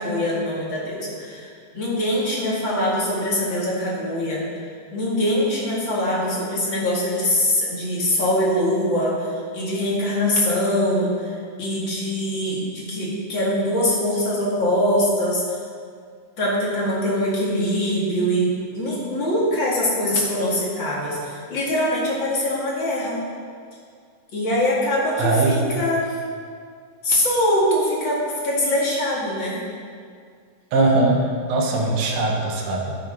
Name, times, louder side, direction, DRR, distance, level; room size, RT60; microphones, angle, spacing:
voice 1, 0.0-4.4 4.9-11.3 11.6-15.4 16.4-23.2 24.3-26.2 27.0-29.6, left 1 dB, 40° left, -5 dB, 2.6 m, -23 dB
voice 2, 25.2-25.7 30.7-32.9, right 2 dB, 60° right, -1 dB, 2.1 m, -20 dB
11.5 x 7.0 x 5.2 m, 2.1 s
omnidirectional pair, 3.9 m